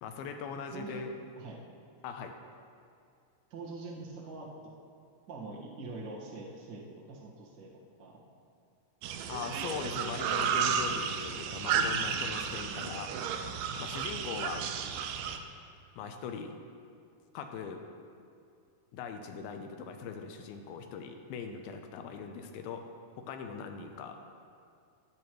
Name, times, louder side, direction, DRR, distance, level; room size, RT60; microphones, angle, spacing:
voice 1, 0.0-1.1 2.0-2.4 9.3-13.1 13.8-14.7 16.0-16.6 17.3-17.8 18.9-22.9 23.2-24.2, left 6 dB, 80° left, 6 dB, 2.5 m, -40 dB
voice 2, 0.7-1.0 1.4-1.6 3.5-4.5 5.3-7.7 8.0-8.2, right 3 dB, 55° right, -4 dB, 1.2 m, -43 dB
sound 1, 9.0-15.4, right 7 dB, 80° right, 2.5 m, -32 dB
15.5 x 8.4 x 3.1 m, 2.4 s
omnidirectional pair, 4.3 m